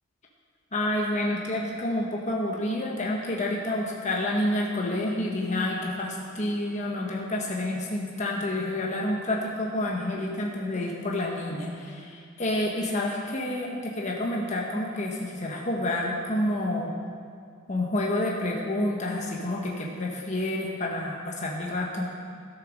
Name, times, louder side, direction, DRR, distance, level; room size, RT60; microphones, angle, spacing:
voice 1, 0.7-16.9 17.7-22.1, left 1 dB, 35° left, -2 dB, 1.0 m, -29 dB
12.5 x 6.5 x 6.3 m, 2.2 s
head